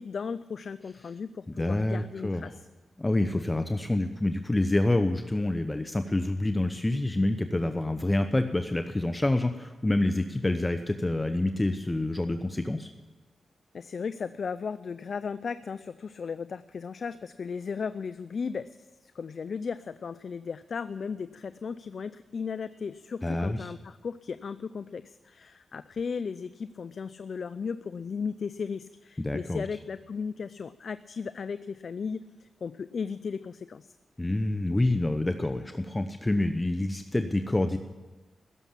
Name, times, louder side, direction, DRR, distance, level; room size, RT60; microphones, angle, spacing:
voice 1, 0.0-2.6 13.7-33.9, left 5 dB, 60° left, 14 dB, 0.4 m, -36 dB
voice 2, 1.5-2.5 3.0-12.9 23.2-23.7 29.2-29.6 34.2-37.8, left 2 dB, 20° left, 8 dB, 0.8 m, -27 dB
16.5 x 7.2 x 10.0 m, 1.2 s
cardioid pair, 60°, 0 cm